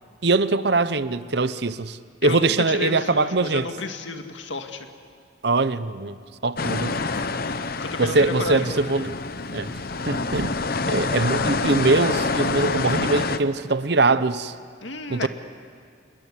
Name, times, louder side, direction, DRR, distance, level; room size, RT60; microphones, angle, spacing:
voice 1, 0.2-3.7 5.4-7.0 8.0-9.2 9.5-9.7 10.1-10.5 10.9-14.5 15.1-15.3, right 3 dB, 60° right, 0.9 m, -22 dB
voice 2, 2.2-4.9 7.8-8.8 14.8-15.3, left 3 dB, 80° left, 2.1 m, -31 dB
sound 1, 6.6-13.4, left 3 dB, 50° left, 0.9 m, -27 dB
29.0 x 20.5 x 9.9 m
head